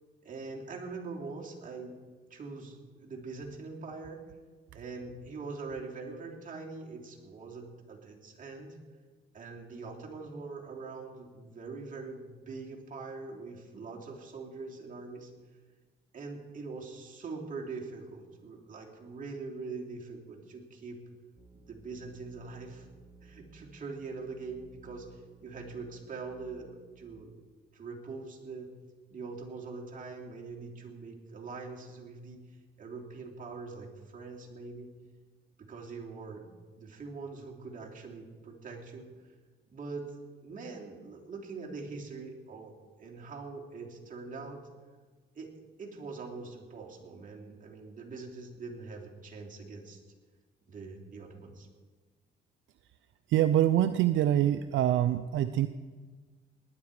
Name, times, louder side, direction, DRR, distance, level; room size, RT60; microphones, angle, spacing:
voice 1, 0.2-2.0 2.3-4.2 4.7-8.8 9.3-15.3 16.1-21.0 21.5-22.9 23.2-27.4 27.7-28.7 29.1-32.4 32.8-34.9 35.6-39.1 39.7-44.7 45.3-45.5 45.8-50.0 50.7-51.7, right 4 dB, 40° right, -1 dB, 3.1 m, -43 dB
sound 1, 21.4-27.2, right 4 dB, 15° right, 1.8 m, -58 dB
voice 2, 53.3-55.7, right 12 dB, 75° right, 11 dB, 0.5 m, -25 dB
19.0 x 10.5 x 4.9 m, 1.4 s
cardioid pair, 90°, 20 cm